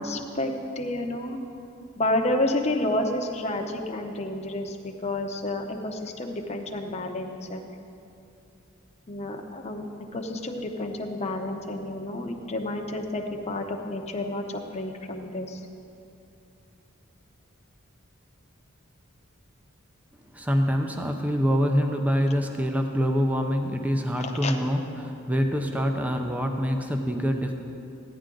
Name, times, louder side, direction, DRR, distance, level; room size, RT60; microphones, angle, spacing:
voice 1, 0.0-1.4 2.0-7.6 9.1-9.9 10.1-14.4 14.7-15.6 24.2-24.6, left 1 dB, 30° left, 3 dB, 0.8 m, -30 dB
voice 2, 20.3-27.5, equal, 5° right, 4 dB, 0.6 m, -25 dB
15.0 x 10.0 x 3.8 m, 2.7 s
head